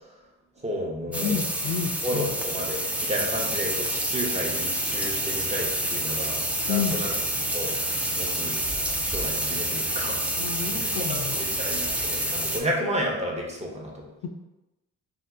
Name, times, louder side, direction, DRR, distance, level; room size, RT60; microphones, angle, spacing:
voice 1, 0.6-1.4 2.0-6.4 6.7-7.1 7.5-8.6 9.0-10.2 10.7-14.1, equal, 20° right, -2 dB, 0.8 m, -32 dB
voice 2, 1.1-2.3 6.7-7.0 10.4-11.4 14.2-14.3, left 7 dB, 70° left, 4 dB, 0.5 m, -30 dB
sound 1, 1.1-12.6, right 1 dB, 5° right, 0.3 m, -28 dB
2.7 x 2.4 x 3.5 m, 0.99 s
cardioid pair, 90°, 30 cm